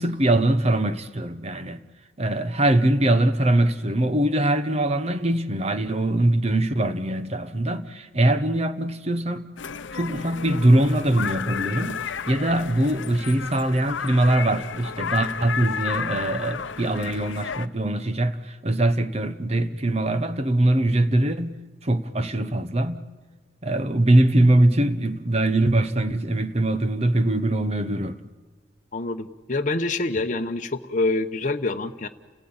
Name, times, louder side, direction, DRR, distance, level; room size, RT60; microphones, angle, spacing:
voice 1, 0.0-1.8 2.2-9.5 9.9-23.1 23.6-28.2, right 1 dB, 35° right, 1.0 m, -22 dB
sound 1, 9.6-17.7, left 6 dB, 75° left, 0.7 m, -32 dB
voice 2, 28.9-32.1, left 2 dB, 40° left, 0.9 m, -26 dB
30.0 x 16.0 x 8.8 m
head